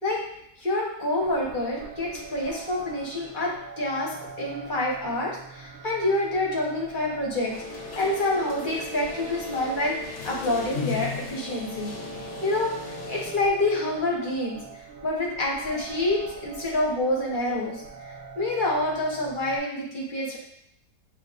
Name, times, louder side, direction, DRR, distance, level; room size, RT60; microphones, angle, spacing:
voice 1, 0.6-4.1 4.4-11.9 12.4-14.6 15.0-17.8 18.4-20.4, left 2 dB, 35° left, -3 dB, 0.9 m, -27 dB
sound 1, 1.1-19.6, right 6 dB, 55° right, 0.7 m, -42 dB
sound 2, 7.5-13.3, left 5 dB, 85° left, 1.3 m, -37 dB
7.1 x 2.4 x 2.4 m, 0.75 s
omnidirectional pair, 1.8 m